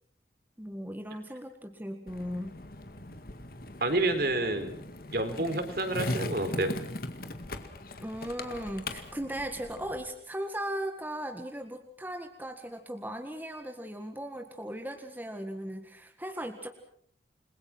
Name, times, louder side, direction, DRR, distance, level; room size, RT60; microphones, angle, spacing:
voice 1, 0.6-2.5 8.0-16.7, equal, 10° right, 5 dB, 1.8 m, -37 dB
Skateboard, 2.1-10.1, left 2 dB, 50° left, 2.1 m, -39 dB
voice 2, 3.8-4.8 5.1-6.7, right 2 dB, 55° right, 8 dB, 3.7 m, -29 dB
29.5 x 22.0 x 6.0 m, 0.62 s
head